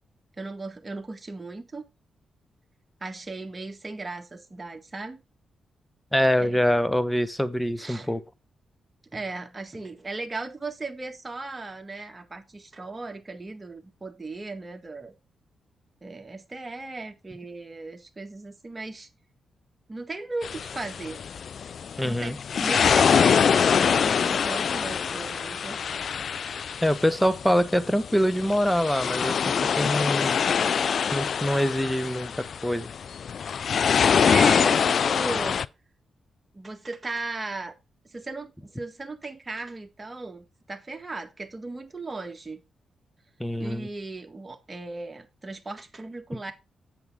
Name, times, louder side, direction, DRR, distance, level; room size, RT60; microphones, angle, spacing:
voice 1, 0.4-1.8 3.0-5.2 6.4-6.6 7.8-8.1 9.1-15.1 16.0-19.1 19.9-21.2 22.0-25.8 34.2-35.6 36.5-37.7 38.0-42.6 43.6-46.5, right 3 dB, 30° right, 1.7 m, -36 dB
voice 2, 6.1-8.2 22.0-22.4 26.8-30.4 31.1-32.9 43.4-43.9, equal, 5° left, 1.0 m, -24 dB
sound 1, 20.4-35.7, left 7 dB, 65° left, 0.3 m, -24 dB
7.9 x 7.3 x 3.6 m
supercardioid pair, 50°, 0 cm